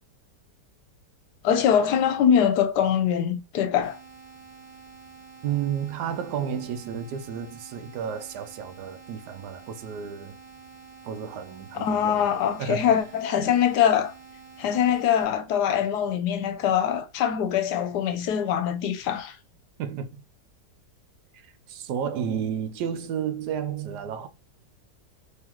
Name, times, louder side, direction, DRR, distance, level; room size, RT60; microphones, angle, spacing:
voice 1, 1.4-4.0 11.7-14.1 14.6-19.4, left 8 dB, 75° left, 1.1 m, -23 dB
sound 1, 3.8-15.2, right 5 dB, 20° right, 1.8 m, -48 dB
voice 2, 5.4-10.4 11.0-12.3 12.6-12.9 19.8-20.1 21.7-24.3, right 8 dB, 75° right, 1.1 m, -32 dB
3.7 x 3.1 x 2.9 m
omnidirectional pair, 1.8 m